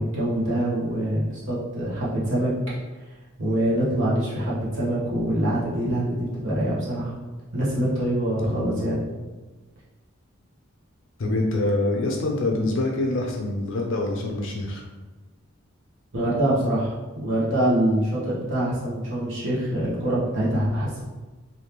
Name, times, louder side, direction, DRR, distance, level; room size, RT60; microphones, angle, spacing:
voice 1, 0.0-2.5 3.4-7.1 7.5-9.0 16.1-21.0, right 1 dB, 65° right, -8 dB, 1.1 m, -24 dB
voice 2, 8.4-8.9 11.2-14.8, left 2 dB, 65° left, 1 dB, 0.5 m, -25 dB
3.4 x 2.7 x 2.9 m, 1.2 s
head